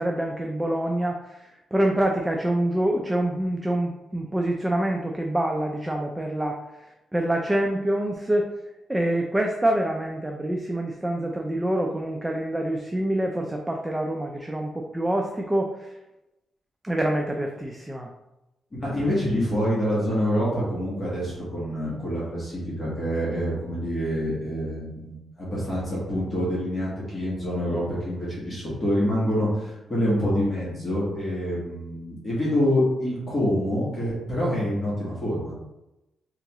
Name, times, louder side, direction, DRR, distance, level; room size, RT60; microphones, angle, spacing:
voice 1, 0.0-6.6 6.8-8.5 8.9-16.0 16.8-18.1, right 1 dB, 10° right, 1 dB, 0.3 m, -26 dB
voice 2, 18.8-35.5, equal, 20° left, -8 dB, 1.5 m, -26 dB
3.7 x 3.0 x 3.5 m, 0.95 s
wide cardioid pair, 155°, 0 cm